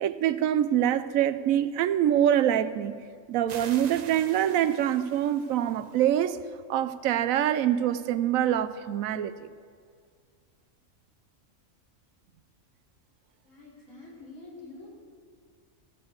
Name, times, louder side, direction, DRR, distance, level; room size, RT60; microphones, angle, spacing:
voice 1, 0.0-3.0 3.3-6.4 6.7-9.3, right 11 dB, 85° right, 13 dB, 1.0 m, -25 dB
sound 1, 3.5-6.1, right 6 dB, 55° right, 0.4 m, -46 dB
voice 2, 13.4-14.9, left 3 dB, 70° left, -6 dB, 4.0 m, -47 dB
14.5 x 6.8 x 7.8 m, 2.2 s
omnidirectional pair, 1.4 m